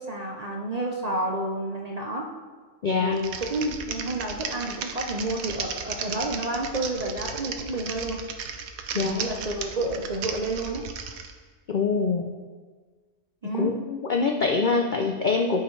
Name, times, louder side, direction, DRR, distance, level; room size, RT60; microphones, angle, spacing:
voice 1, 0.0-2.3 3.0-8.2 8.9-10.9 13.4-13.7, right 1 dB, 45° right, 0 dB, 0.5 m, -30 dB
voice 2, 2.8-3.2 8.9-9.3 11.7-12.3 13.5-15.6, left 4 dB, 85° left, 3 dB, 0.4 m, -24 dB
Typing, 3.1-11.3, right 6 dB, 80° right, 1.1 m, -35 dB
13.0 x 4.8 x 3.2 m, 1.5 s
omnidirectional pair, 1.5 m